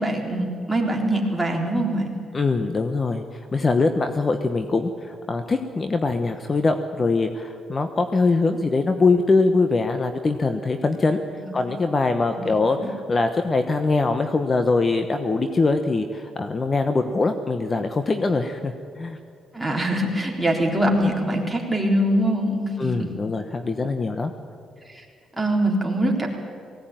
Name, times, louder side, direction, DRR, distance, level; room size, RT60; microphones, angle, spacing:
voice 1, 0.0-2.1 11.4-11.7 12.3-12.5 12.7-12.9 19.5-23.1 24.9-25.0 25.4-26.3, right 1 dB, 5° right, -1 dB, 3.9 m, -23 dB
voice 2, 2.3-3.2 3.5-11.2 11.5-19.2 22.8-24.3, left 3 dB, 30° left, 7 dB, 1.1 m, -22 dB
19.0 x 17.0 x 9.2 m, 2.3 s
cardioid pair, 90°, 0 cm